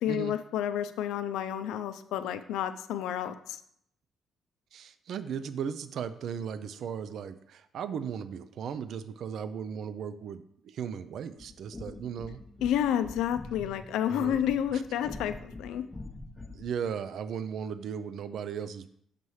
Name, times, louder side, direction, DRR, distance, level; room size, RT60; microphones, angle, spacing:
voice 1, 0.0-3.6 12.6-15.8, left 10 dB, 90° left, 11 dB, 0.4 m, -30 dB
voice 2, 4.7-12.4 14.1-14.4 14.7-14.8 16.5-18.9, right 7 dB, 70° right, 13 dB, 0.3 m, -36 dB
sound 1, 11.4-16.7, left 2 dB, 15° left, 0.8 m, -45 dB
6.7 x 3.1 x 5.5 m, 0.70 s
cardioid pair, 90°, 0 cm